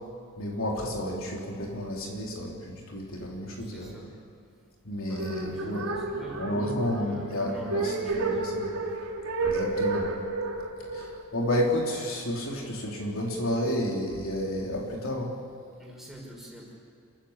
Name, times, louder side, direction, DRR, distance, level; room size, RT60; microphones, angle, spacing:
voice 1, 0.4-3.9 4.9-6.0 6.4-8.7 9.4-10.1 10.9-15.3, left 1 dB, 65° left, -1 dB, 3.6 m, -31 dB
voice 2, 3.6-4.1 5.1-8.4 10.8-10.9 15.8-16.7, right 1 dB, ahead, -3 dB, 5.5 m, -44 dB
sound 1, 5.1-12.3, right 3 dB, 80° right, 3.6 m, -32 dB
29.5 x 15.0 x 8.2 m, 2.3 s
head